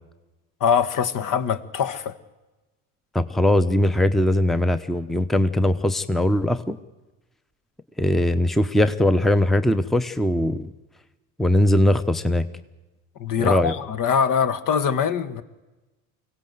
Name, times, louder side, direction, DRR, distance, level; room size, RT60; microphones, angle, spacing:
voice 1, 0.6-2.1 13.2-15.4, left 7 dB, 50° left, 12 dB, 1.7 m, -23 dB
voice 2, 3.1-6.8 8.0-10.7 11.4-12.5 13.4-13.7, left 1 dB, ahead, 12 dB, 0.9 m, -20 dB
24.0 x 17.5 x 7.9 m, 1.1 s
hypercardioid pair, 75°, 41 cm